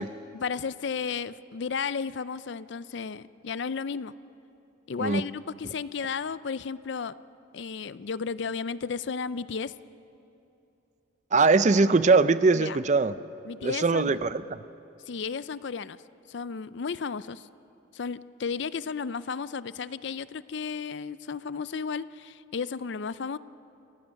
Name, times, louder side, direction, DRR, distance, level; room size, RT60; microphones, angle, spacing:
voice 1, 0.0-4.1 4.9-7.1 7.5-9.7 12.5-12.8 13.4-14.2 15.1-16.0 16.3-17.5 17.9-23.4, left 5 dB, 60° left, 16 dB, 0.5 m, -33 dB
voice 2, 11.3-13.2 13.6-14.4, right 3 dB, 35° right, 14 dB, 0.5 m, -21 dB
28.0 x 15.0 x 6.4 m, 2.9 s
head